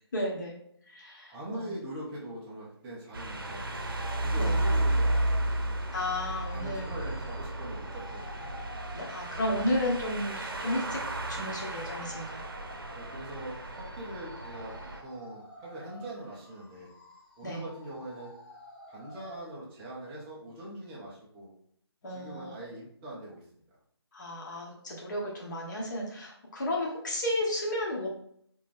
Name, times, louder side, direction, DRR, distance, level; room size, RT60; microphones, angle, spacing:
voice 1, 0.1-0.6 0.9-1.7 4.4-4.6 5.9-6.9 8.9-12.5 17.4-17.6 22.0-22.6 24.1-28.1, left 1 dB, 45° left, -3 dB, 1.1 m, -33 dB
voice 2, 1.3-3.9 4.2-5.8 6.5-8.5 12.9-14.7 15.0-16.9 17.4-18.4 18.9-21.5 22.1-23.6, right 1 dB, 5° right, -5 dB, 0.4 m, -42 dB
sound 1, 3.1-15.0, right 1 dB, 50° right, 0.7 m, -33 dB
sound 2, 3.3-19.4, left 1 dB, 20° left, 1.0 m, -50 dB
4.6 x 3.0 x 3.6 m, 0.66 s
figure-of-eight pair, 150°, 14 cm